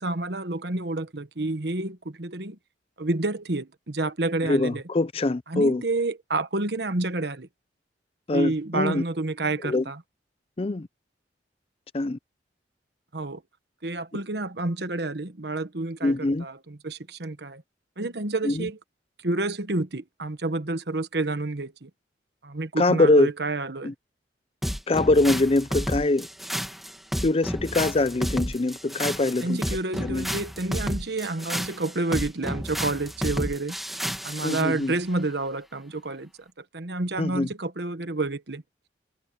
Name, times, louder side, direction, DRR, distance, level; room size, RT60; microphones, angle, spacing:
voice 1, 0.0-2.6 3.0-4.8 5.5-7.5 8.3-10.0 13.1-13.4 13.8-17.6 18.0-18.8 19.2-21.9 22.4-23.9 29.4-33.8 34.2-36.3 36.6-38.6, right 2 dB, 65° right, 1.3 m, -29 dB
voice 2, 4.4-5.8 8.3-9.0 9.6-9.8 10.6-10.9 11.9-12.2 16.0-16.5 18.4-18.7 22.8-23.3 23.8-23.9 24.9-26.3 27.2-29.6 30.0-30.2 34.4-34.9 37.2-37.5, left 2 dB, 35° left, 0.5 m, -23 dB
sound 1, 24.6-34.7, equal, ahead, 1.9 m, -31 dB
head